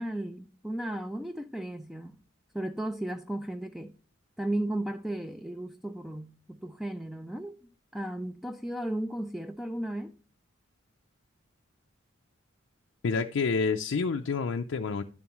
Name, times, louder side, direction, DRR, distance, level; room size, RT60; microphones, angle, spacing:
voice 1, 0.0-2.2 2.5-3.9 4.4-10.1, right 1 dB, ahead, 0.3 m, -35 dB
voice 2, 13.0-15.0, left 4 dB, 65° left, 0.4 m, -28 dB
11.0 x 7.1 x 3.0 m
head